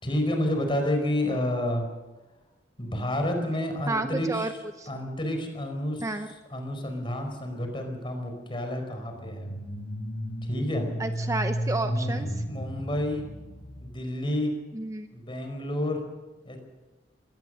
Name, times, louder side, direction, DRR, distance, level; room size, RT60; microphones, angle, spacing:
voice 1, 0.0-1.9 2.8-4.5 4.9-6.1 6.5-9.5 10.5-10.9 11.8-13.3 13.8-14.5 15.1-16.0 16.4-16.6, left 1 dB, 30° left, 5 dB, 4.7 m, -30 dB
voice 2, 3.9-4.5 4.8-4.9 6.0-6.3 11.0-12.3 14.7-15.1, right 2 dB, 20° right, 7 dB, 0.8 m, -30 dB
sound 1, 9.1-14.0, equal, 55° left, 3.7 m, -33 dB
22.5 x 18.0 x 6.5 m, 1.2 s
head